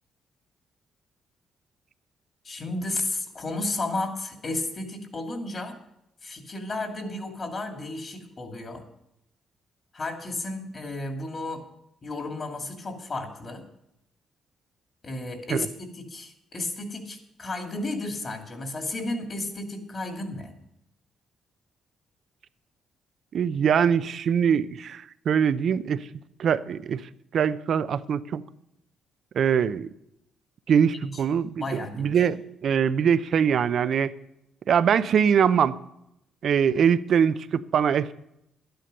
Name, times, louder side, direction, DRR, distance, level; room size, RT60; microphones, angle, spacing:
voice 1, 2.4-5.8 6.2-8.8 9.9-11.6 12.0-13.6 15.0-20.5 31.0-31.2 31.6-32.2, left 2 dB, 40° left, 2.5 m, -33 dB
voice 2, 23.3-26.0 26.4-27.0 27.3-28.4 29.4-29.9 30.7-34.1 34.7-35.8 36.4-38.1, right 7 dB, 60° right, 0.6 m, -23 dB
12.0 x 10.5 x 5.4 m
cardioid pair, 90°, 0 cm